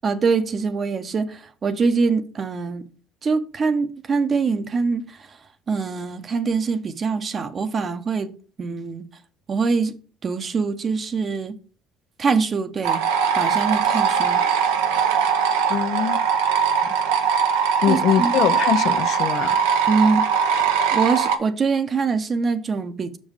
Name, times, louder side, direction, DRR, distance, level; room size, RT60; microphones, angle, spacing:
voice 1, 0.0-2.9 3.2-5.4 5.7-8.3 8.6-9.0 9.5-9.9 10.2-11.6 12.2-13.0 13.4-14.4 17.9-18.3 19.9-20.3 20.9-23.2, right 4 dB, 40° right, 0.8 m, -23 dB
sound 1, 12.8-21.4, right 7 dB, 90° right, 0.8 m, -21 dB
voice 2, 15.7-16.3 16.8-16.9 17.8-19.6, left 9 dB, 65° left, 0.5 m, -23 dB
6.3 x 5.4 x 4.8 m
supercardioid pair, 80°, 0 cm